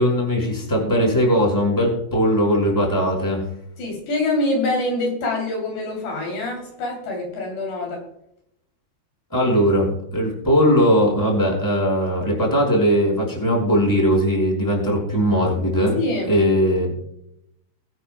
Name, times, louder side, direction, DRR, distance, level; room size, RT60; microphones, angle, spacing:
voice 1, 0.0-3.4 9.3-16.0 16.3-17.1, equal, 5° left, -1 dB, 4.6 m, -19 dB
voice 2, 3.8-8.0 16.0-16.4, left 2 dB, 65° left, 0 dB, 4.9 m, -25 dB
23.0 x 9.1 x 2.2 m, 0.76 s
omnidirectional pair, 5.4 m